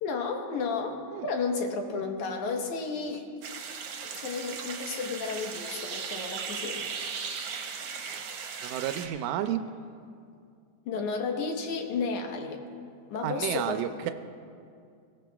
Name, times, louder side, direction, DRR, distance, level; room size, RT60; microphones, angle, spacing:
voice 1, 0.0-3.3 4.2-6.8 10.9-12.6 13.1-13.8, left 4 dB, 90° left, 2 dB, 2.6 m, -32 dB
sound 1, 3.4-9.1, right 6 dB, 65° right, 1.8 m, -37 dB
voice 2, 8.6-9.6 13.2-14.1, right 11 dB, 85° right, 8 dB, 1.9 m, -31 dB
21.5 x 16.5 x 2.3 m, 2.3 s
omnidirectional pair, 3.3 m